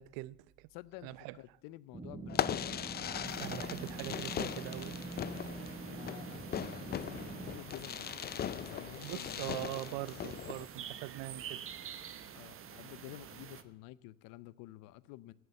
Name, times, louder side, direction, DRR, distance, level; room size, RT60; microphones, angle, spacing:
voice 1, 0.0-0.7 1.0-1.4 3.4-5.0 9.0-11.6, right 17 dB, 75° right, 0.7 m, -42 dB
voice 2, 0.7-2.7 5.9-9.8 12.3-15.3, left 16 dB, 70° left, 0.7 m, -51 dB
sound 1, 1.9-7.6, right 3 dB, 15° right, 0.9 m, -45 dB
Fireworks, 2.3-10.7, left 9 dB, 30° left, 0.5 m, -39 dB
sound 2, 3.2-13.6, right 9 dB, 40° right, 1.2 m, -49 dB
15.0 x 8.1 x 8.9 m
cardioid pair, 120°, 34 cm